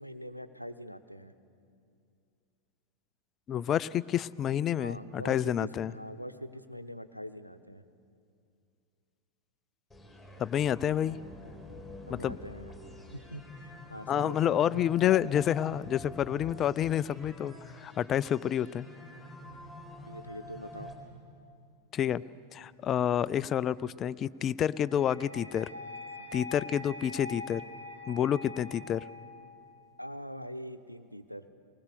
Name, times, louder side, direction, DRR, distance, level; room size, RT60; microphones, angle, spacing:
voice 1, 0.0-1.3 4.8-7.8 12.1-12.7 13.1-14.7 20.1-20.9 26.2-26.3 30.0-31.4, equal, 90° left, 11 dB, 0.8 m, -43 dB
voice 2, 3.5-5.9 10.4-11.2 12.1-12.4 14.1-18.9 21.9-22.2 22.5-25.7 26.3-27.6 28.1-29.0, left 10 dB, 30° left, 19 dB, 0.4 m, -29 dB
sound 1, 9.9-20.9, left 1 dB, 5° left, 3.8 m, -47 dB
sound 2, 24.8-29.8, left 2 dB, 90° right, 1.7 m, -44 dB
20.5 x 20.0 x 7.0 m, 2.5 s
figure-of-eight pair, 90°, 0 cm